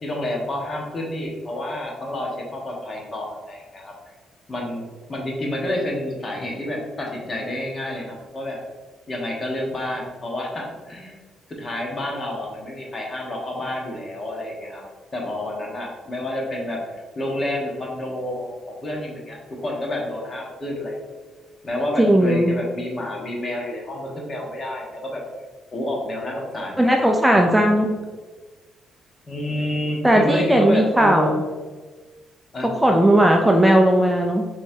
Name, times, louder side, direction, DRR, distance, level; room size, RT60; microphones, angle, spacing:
voice 1, 0.0-3.9 4.5-8.6 9.1-11.2 11.6-14.8 15.1-19.4 19.6-21.0 21.6-25.2 25.7-27.1 27.3-27.6 29.3-31.5 32.5-33.0, left 1 dB, 35° left, -1 dB, 1.2 m, -29 dB
voice 2, 22.0-22.5 26.8-27.9 30.0-31.3 32.6-34.5, right 1 dB, 5° right, 1 dB, 0.4 m, -17 dB
5.5 x 3.1 x 2.7 m, 1.3 s
cardioid pair, 90°, 0 cm